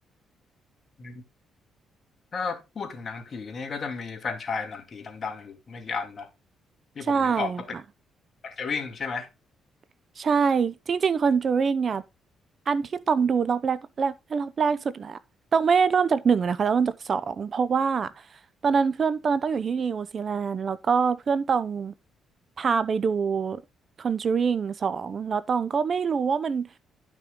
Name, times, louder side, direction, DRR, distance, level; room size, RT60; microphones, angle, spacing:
voice 1, 2.3-6.3 7.0-7.7 8.4-9.3, left 5 dB, 45° left, 2.3 m, -33 dB
voice 2, 7.0-7.8 10.2-12.0 12.7-15.2 15.5-18.1 18.6-21.9 22.6-23.6 24.0-26.7, right 6 dB, 45° right, 0.7 m, -24 dB
11.5 x 6.0 x 3.8 m
cardioid pair, 90°, 0 cm